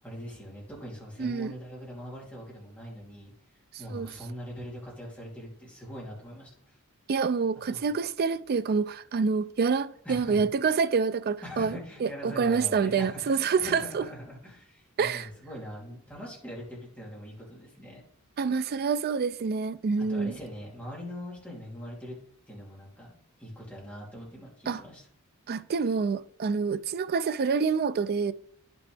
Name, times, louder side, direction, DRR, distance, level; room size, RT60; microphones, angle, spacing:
voice 1, 0.0-3.3 3.8-6.8 7.7-7.8 10.0-10.4 11.4-18.0 20.1-22.1 22.5-25.0, equal, 5° left, 3.0 m, -42 dB
voice 2, 1.2-1.5 3.9-4.1 7.1-14.0 15.0-15.3 18.4-20.3 24.7-24.8 25.5-28.3, right 5 dB, 45° right, 0.4 m, -27 dB
10.5 x 6.1 x 3.4 m
head